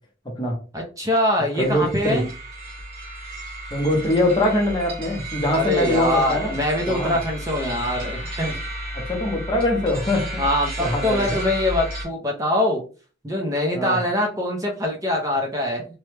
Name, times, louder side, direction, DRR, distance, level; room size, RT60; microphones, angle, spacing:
voice 1, 0.7-2.3 5.5-8.6 10.4-12.8 13.2-15.9, left 1 dB, 15° right, 0 dB, 0.5 m, -23 dB
voice 2, 1.6-2.2 3.7-6.6 6.9-7.2 8.9-10.4 10.8-11.3 13.7-14.0, left 1 dB, 25° left, 1 dB, 0.7 m, -23 dB
sound 1, 1.6-12.1, right 1 dB, 45° right, 1.2 m, -33 dB
2.9 x 2.1 x 3.2 m, 0.36 s
head